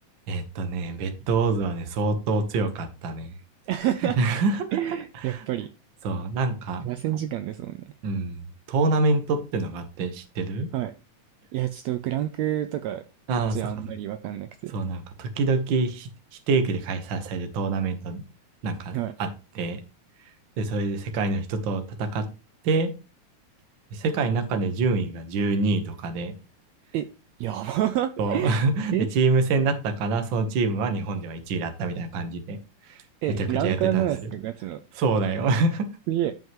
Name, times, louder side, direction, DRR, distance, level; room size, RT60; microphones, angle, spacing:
voice 1, 0.3-3.3 4.0-4.8 5.2-5.4 6.0-6.9 8.0-8.4 8.7-10.7 13.3-13.7 14.7-16.1 16.5-18.2 18.6-19.3 19.5-19.8 20.6-22.3 22.6-22.9 23.9-26.3 28.2-32.6 32.8-33.0 33.4-34.1 34.9-35.9, right 3 dB, 55° right, 1.3 m, -26 dB
voice 2, 3.7-4.2 4.7-5.7 6.8-7.9 10.7-10.9 11.5-13.0 13.5-14.7 18.9-19.1 26.9-27.1 27.4-28.6 28.9-29.1 33.2-34.8 36.1-36.3, right 13 dB, 85° right, 1.5 m, -28 dB
13.0 x 5.5 x 3.1 m
omnidirectional pair, 3.8 m